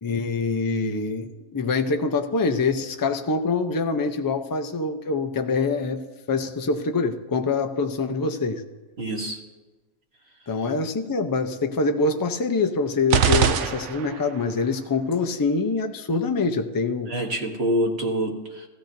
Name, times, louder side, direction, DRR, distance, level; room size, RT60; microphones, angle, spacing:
voice 1, 0.0-6.0 6.3-8.6 10.5-17.2, left 4 dB, 30° left, 6 dB, 0.3 m, -25 dB
voice 2, 9.0-9.4 17.1-18.7, right 1 dB, 50° right, 0 dB, 1.5 m, -26 dB
sound 1, 13.1-14.4, right 8 dB, 70° right, 0.9 m, -22 dB
18.0 x 14.5 x 2.7 m, 1.2 s
omnidirectional pair, 1.4 m